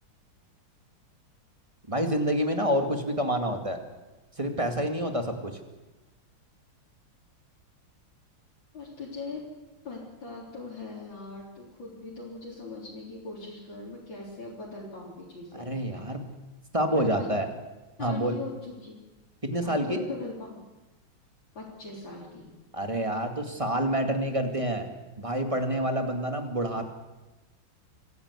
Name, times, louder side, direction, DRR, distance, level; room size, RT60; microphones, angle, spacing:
voice 1, 1.9-3.8 4.4-5.6 15.6-16.3 16.7-17.5 18.0-18.4 19.4-20.0 22.7-24.9 25.2-26.8, right 1 dB, 15° right, 5 dB, 2.2 m, -28 dB
voice 2, 8.7-9.4 9.8-15.7 16.9-17.3 18.0-19.0 19.6-20.6 21.5-22.5, left 3 dB, 65° left, -6 dB, 4.5 m, -40 dB
25.0 x 16.0 x 8.3 m, 1.1 s
omnidirectional pair, 2.2 m